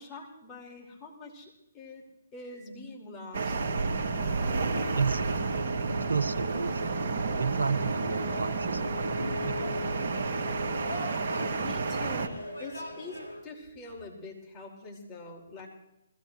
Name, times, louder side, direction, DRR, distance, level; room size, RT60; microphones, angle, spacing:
voice 1, 0.0-2.0 2.3-3.6 11.6-12.3 12.6-15.7, left 2 dB, 20° left, -2 dB, 5.1 m, -44 dB
sound 1, 3.3-12.3, right 4 dB, 50° right, 2.0 m, -31 dB
sound 2, 3.5-13.4, left 2 dB, 85° left, 7.3 m, -39 dB
voice 2, 4.9-10.6, right 5 dB, 80° right, 10 dB, 1.0 m, -34 dB
21.5 x 17.0 x 3.2 m, 0.87 s
figure-of-eight pair, 135°, 0 cm